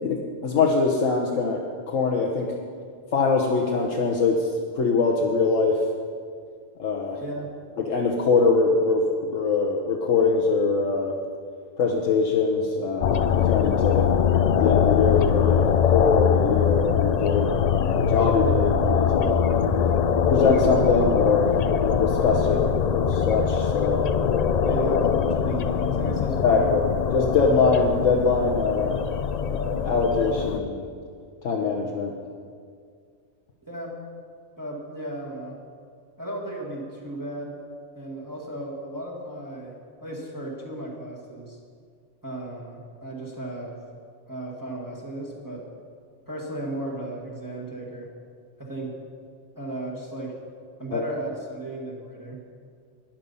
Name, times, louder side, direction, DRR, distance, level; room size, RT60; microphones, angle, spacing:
voice 1, 0.0-1.6 1.9-2.5 3.1-4.5 4.7-5.8 6.8-7.2 7.9-11.1 11.8-14.0 14.6-17.7 18.0-19.3 20.3-21.5 21.8-22.6 22.9-24.0 26.4-26.8 27.1-29.0 29.5-30.8 31.4-32.1 50.9-51.0, left 4 dB, 85° left, -1 dB, 1.3 m, -23 dB
voice 2, 7.2-7.6 22.4-22.6 24.6-26.7 33.6-34.0 34.6-35.5 36.2-37.6 37.9-39.8 40.0-41.6 42.2-43.8 44.3-45.6 46.3-48.1 48.6-48.9 49.5-50.4 50.8-52.4, right 1 dB, 15° right, -4 dB, 1.7 m, -35 dB
sound 1, 13.0-30.6, left 7 dB, 70° left, 0.4 m, -22 dB
12.0 x 10.0 x 5.5 m, 2.1 s
omnidirectional pair, 1.3 m